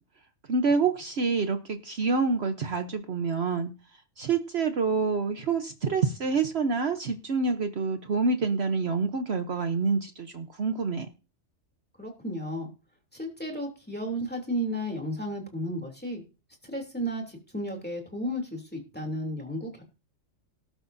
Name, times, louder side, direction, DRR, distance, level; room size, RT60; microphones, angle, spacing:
voice 1, 0.5-3.7 4.2-11.1, right 4 dB, 55° right, 7 dB, 1.1 m, -27 dB
voice 2, 12.0-12.7 13.1-16.2 16.6-19.8, equal, 5° left, 2 dB, 2.8 m, -33 dB
18.5 x 8.4 x 2.6 m, 0.33 s
omnidirectional pair, 1.3 m